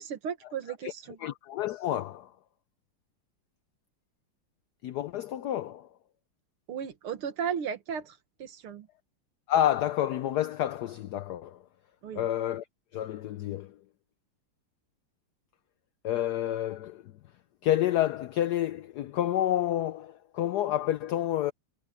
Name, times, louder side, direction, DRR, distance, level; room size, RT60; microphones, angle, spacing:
voice 1, 0.0-1.2 6.7-8.9 12.0-12.3, right 7 dB, 90° right, 2.4 m, -35 dB
voice 2, 1.2-2.3 4.8-5.9 9.5-11.6 12.2-12.7 12.9-13.8 16.0-17.1 17.6-21.5, left 12 dB, 85° left, 0.8 m, -29 dB
omnidirectional pair, 2.3 m